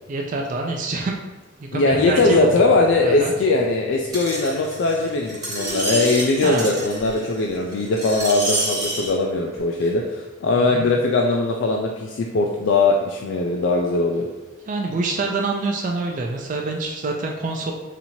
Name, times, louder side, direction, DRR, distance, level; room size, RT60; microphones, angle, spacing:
voice 1, 0.1-1.2 1.6-2.5 3.0-3.3 6.4-6.7 10.6-10.8 14.7-17.7, right 3 dB, 40° right, 1 dB, 0.3 m, -26 dB
voice 2, 1.7-14.3, left 3 dB, 60° left, 0 dB, 0.3 m, -20 dB
sound 1, 1.9-8.8, left 1 dB, ahead, 1.3 m, -44 dB
Screech, 4.1-9.1 9.8-9.9, right 1 dB, 20° right, 1.1 m, -28 dB
sound 2, 5.5-9.7, left 1 dB, 60° right, 1.0 m, -35 dB
4.2 x 2.8 x 2.7 m, 1.2 s
head